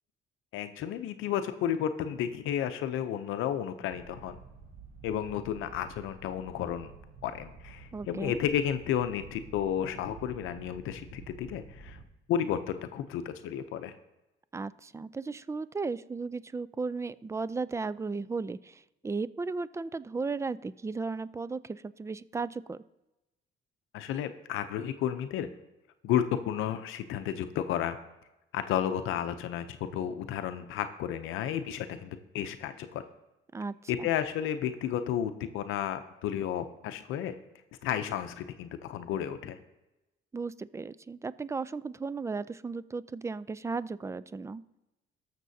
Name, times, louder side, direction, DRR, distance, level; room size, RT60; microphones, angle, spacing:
voice 1, 0.5-4.4 5.0-6.9 7.2-12.0 12.3-13.9 23.9-25.5 26.0-28.0 28.5-33.0 33.9-37.4 37.8-39.6, left 9 dB, 90° left, 10 dB, 0.6 m, -32 dB
sound 1, 3.9-12.0, right 4 dB, 55° right, 3.0 m, -50 dB
voice 2, 7.9-8.4 14.5-22.8 33.5-34.1 40.3-44.6, right 4 dB, 15° right, 17 dB, 0.3 m, -35 dB
19.5 x 6.7 x 2.7 m, 0.99 s
cardioid pair, 90°, 20 cm